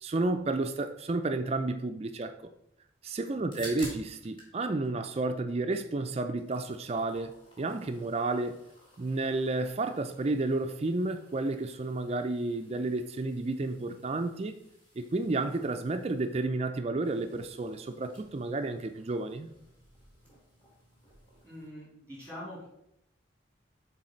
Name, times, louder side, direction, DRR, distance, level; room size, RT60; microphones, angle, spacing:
voice 1, 0.0-2.3 3.0-8.6 9.0-14.5 15.0-19.5, right 2 dB, 30° right, 8 dB, 0.4 m, -31 dB
sound 1, 3.5-4.6 4.8-5.9 6.2-21.7, equal, 25° left, 1.8 m, -53 dB
voice 2, 21.4-22.7, left 1 dB, 10° left, -6 dB, 2.6 m, -44 dB
6.4 x 4.0 x 4.3 m, 0.80 s
head